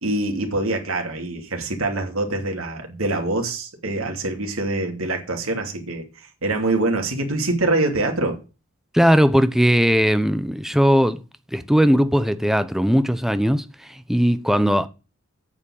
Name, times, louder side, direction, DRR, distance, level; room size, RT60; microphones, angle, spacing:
voice 1, 0.0-6.0 6.4-8.4, right 2 dB, 85° right, 2.8 m, -24 dB
voice 2, 8.9-11.2 11.5-13.6 14.1-14.9, equal, ahead, 0.8 m, -18 dB
8.8 x 7.2 x 8.8 m
head